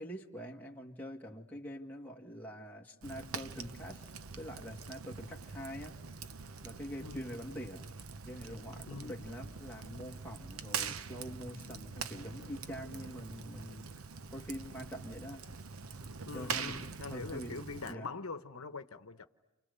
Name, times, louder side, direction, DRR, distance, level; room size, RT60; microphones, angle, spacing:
voice 1, 0.0-4.1 4.4-6.0 6.6-7.8 8.2-13.9 14.3-15.5 16.3-17.6 17.9-18.1, equal, 10° left, 2.1 m, -45 dB
Fire, 3.0-17.9, right 5 dB, 75° right, 0.9 m, -44 dB
voice 2, 16.2-19.3, left 4 dB, 80° left, 1.0 m, -43 dB
30.0 x 28.5 x 6.8 m
head